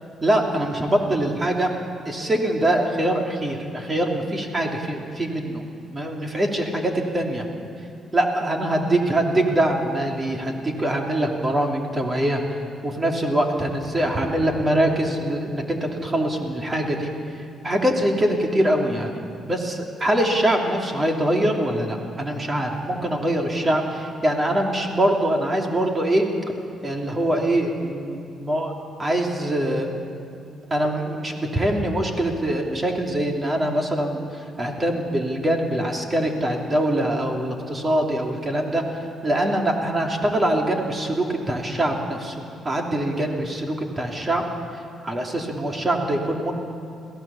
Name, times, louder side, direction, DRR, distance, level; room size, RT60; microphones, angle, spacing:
voice 1, 0.2-1.7 2.0-5.6 5.9-7.4 8.1-12.4 12.8-17.1 17.6-26.3 26.8-28.7 29.0-29.9 30.7-38.8 39.2-42.3 42.6-44.4 45.0-46.5, right 1 dB, 25° right, 1 dB, 2.9 m, -23 dB
22.5 x 16.5 x 7.1 m, 2.5 s
cardioid pair, 90°, 0 cm